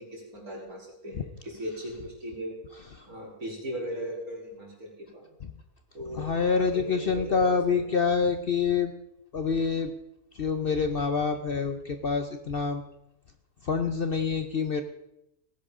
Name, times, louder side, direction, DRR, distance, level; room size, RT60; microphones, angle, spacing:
voice 1, 0.0-2.6 3.1-5.4 5.9-7.9, equal, 75° right, -2 dB, 4.0 m, -38 dB
voice 2, 6.1-8.9 9.3-9.9 10.3-12.8 13.6-14.8, left 5 dB, 50° left, 8 dB, 0.7 m, -26 dB
18.0 x 10.5 x 3.7 m, 0.84 s
omnidirectional pair, 1.6 m